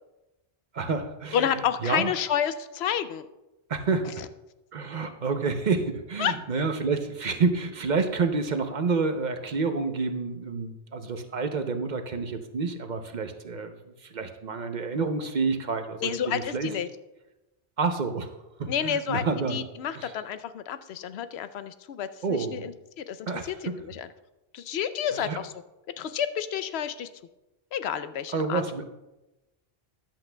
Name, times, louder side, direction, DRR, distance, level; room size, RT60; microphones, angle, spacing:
voice 1, 0.7-1.4 1.8-2.1 3.7-4.2 4.7-13.7 14.0-16.7 17.8-18.3 18.6-19.6 19.9-20.1 22.2-22.7 23.3-23.8 25.1-25.4 28.3-28.8, right 4 dB, 50° right, 7 dB, 0.8 m, -29 dB
voice 2, 1.3-3.3 6.2-6.4 16.0-16.9 18.7-19.2 19.5-24.1 24.5-25.5 26.0-27.1 27.7-28.6, left 9 dB, 85° left, 12 dB, 0.8 m, -30 dB
14.0 x 10.5 x 2.2 m, 1.0 s
omnidirectional pair, 1.1 m